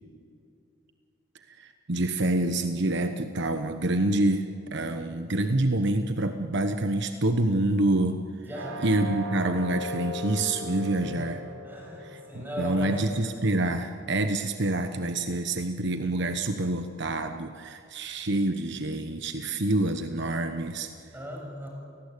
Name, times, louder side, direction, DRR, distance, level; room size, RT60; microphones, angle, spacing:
voice 1, 1.5-8.2 8.8-11.4 12.0-20.9, right 2 dB, 65° right, 7 dB, 1.1 m, -27 dB
voice 2, 8.5-8.8 11.0-11.1 11.6-12.9 21.1-21.7, equal, 10° right, -1 dB, 7.0 m, -37 dB
sound 1, 8.5-14.2, left 1 dB, 85° right, 5.0 m, -39 dB
30.0 x 18.5 x 8.4 m, 2.4 s
head